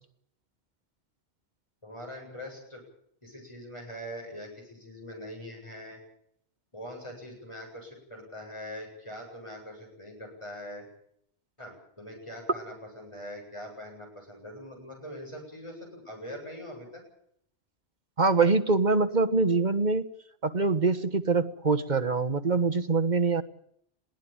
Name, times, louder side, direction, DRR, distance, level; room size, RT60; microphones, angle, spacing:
voice 1, 1.8-2.8 3.2-6.0 6.7-10.9 11.6-17.0, equal, 25° left, 1 dB, 8.2 m, -42 dB
voice 2, 18.2-20.1 20.4-23.4, right 4 dB, 40° right, 8 dB, 1.5 m, -24 dB
21.5 x 17.0 x 8.9 m, 0.70 s
omnidirectional pair, 1.1 m